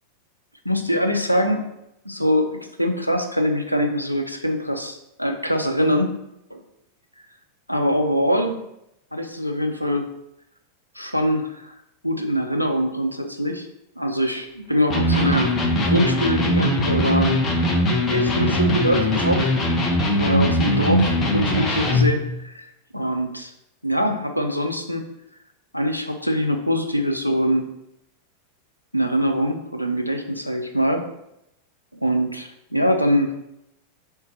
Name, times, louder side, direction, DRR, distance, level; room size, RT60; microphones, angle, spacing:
voice 1, 0.6-1.6 2.0-6.1 6.5-6.6 7.7-8.6 9.1-10.1 11.0-11.7 12.0-13.7 14.0-15.5 15.8-17.4 18.1-19.5 20.2-23.5 23.8-25.0 25.7-27.6 28.9-31.1 31.9-33.3, equal, 90° left, 4 dB, 0.4 m, -23 dB
Electric guitar, 14.9-22.2, left 1 dB, 25° left, 0.7 m, -20 dB
3.8 x 2.2 x 4.4 m, 0.83 s
figure-of-eight pair, 90°, 0 cm